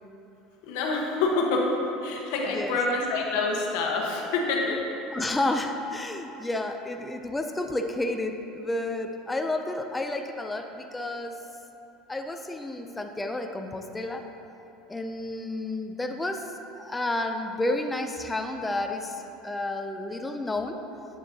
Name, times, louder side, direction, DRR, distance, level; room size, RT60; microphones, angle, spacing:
voice 1, 0.6-1.7 2.0-4.8, left 3 dB, 75° left, -1 dB, 1.0 m, -26 dB
voice 2, 5.1-11.4 12.1-14.3 14.9-20.8, left 2 dB, 10° left, 5 dB, 0.4 m, -31 dB
8.5 x 6.1 x 2.7 m, 2.8 s
supercardioid pair, 140°, 0 cm